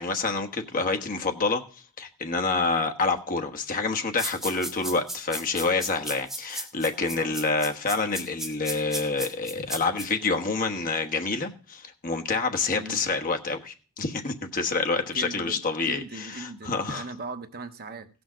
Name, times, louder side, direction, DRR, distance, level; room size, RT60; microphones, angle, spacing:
voice 1, 0.0-17.1, left 3 dB, 40° left, 1.2 m, -27 dB
sound 1, 4.2-10.1, right 1 dB, ahead, 1.9 m, -34 dB
voice 2, 12.7-13.1 15.1-18.2, right 3 dB, 45° right, 0.9 m, -39 dB
16.0 x 6.3 x 6.2 m
head